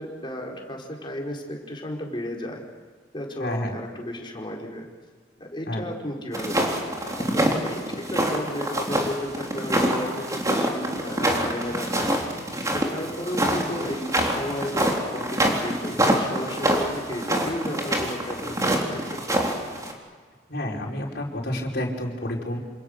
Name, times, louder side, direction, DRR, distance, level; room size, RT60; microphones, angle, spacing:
voice 1, 0.0-2.6 3.1-4.9 5.4-12.2 12.7-19.4, equal, 30° left, 0 dB, 4.7 m, -33 dB
voice 2, 3.4-3.7 5.7-5.8 20.5-22.6, left 1 dB, 65° left, -1 dB, 5.0 m, -29 dB
sound 1, 6.3-19.9, right 1 dB, 20° right, 3.7 m, -25 dB
27.5 x 27.5 x 6.7 m, 1.5 s
head